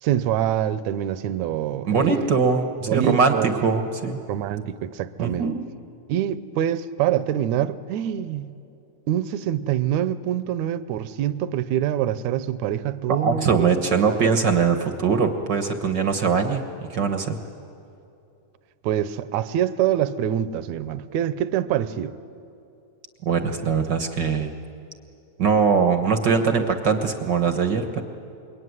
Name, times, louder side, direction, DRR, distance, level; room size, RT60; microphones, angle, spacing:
voice 1, 0.0-2.3 2.9-3.7 4.3-5.5 6.1-8.5 9.1-13.7 18.8-22.1, right 11 dB, 75° right, 14 dB, 1.9 m, -25 dB
voice 2, 1.9-4.2 5.2-5.6 13.1-16.6 16.9-17.4 23.2-24.5 25.4-28.0, right 5 dB, 55° right, 6 dB, 1.2 m, -21 dB
27.0 x 23.0 x 9.6 m, 2.7 s
omnidirectional pair, 3.7 m